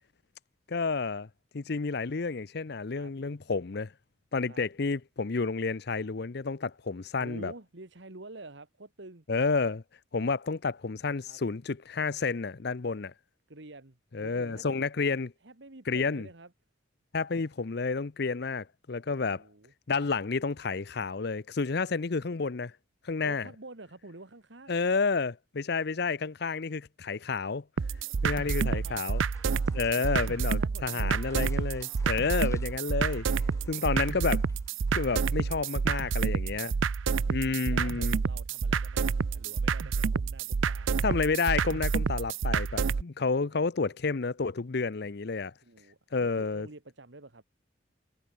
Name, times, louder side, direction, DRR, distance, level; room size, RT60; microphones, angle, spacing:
voice 1, 0.7-1.3 1.5-3.9 4.3-7.5 9.3-9.8 10.1-13.1 14.1-15.3 15.9-16.3 17.1-19.4 19.9-22.7 23.0-23.5 24.7-27.6 28.2-29.2 29.7-33.2 33.7-34.5 34.9-36.7 37.3-38.2 41.0-45.5 46.1-46.7, left 4 dB, 55° left, 0.6 m, -30 dB
voice 2, 7.1-9.2 11.3-11.4 13.5-14.8 15.4-16.5 19.1-19.7 23.2-24.8 28.0-29.0 29.8-31.4 33.4-34.1 36.6-36.8 37.5-40.9 43.4-43.6 45.6-47.4, right 2 dB, 65° right, 1.7 m, -49 dB
sound 1, 27.8-43.0, right 5 dB, 85° right, 0.5 m, -29 dB
sound 2, 28.0-35.6, left 3 dB, 15° left, 5.7 m, -59 dB
head